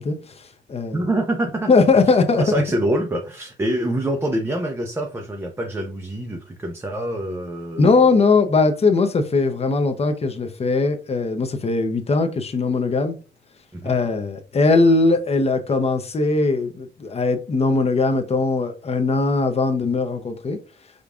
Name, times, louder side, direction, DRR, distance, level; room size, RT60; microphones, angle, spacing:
voice 1, 0.0-1.0 1.7-2.4 7.8-13.2 13.8-20.6, left 3 dB, 30° left, 0.7 m, -20 dB
voice 2, 0.9-1.7 2.4-8.1 13.7-13.9, right 1 dB, 10° right, 0.5 m, -25 dB
5.1 x 2.3 x 2.4 m
cardioid pair, 90°, 20 cm